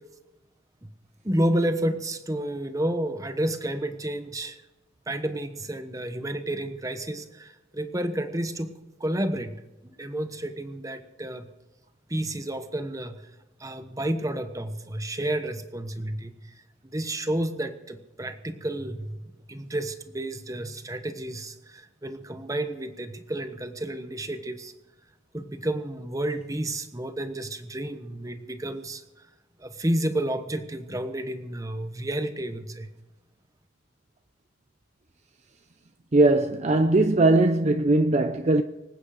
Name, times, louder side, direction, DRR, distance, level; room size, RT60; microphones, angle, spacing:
voice 1, 1.2-4.6 5.1-8.7 9.0-9.5 9.8-11.5 12.1-13.2 13.6-16.5 16.9-24.7 25.3-29.0 29.6-32.9, right 1 dB, 15° right, 1.1 m, -30 dB
voice 2, 36.1-38.6, right 2 dB, 35° right, 0.5 m, -20 dB
25.5 x 9.1 x 5.0 m
head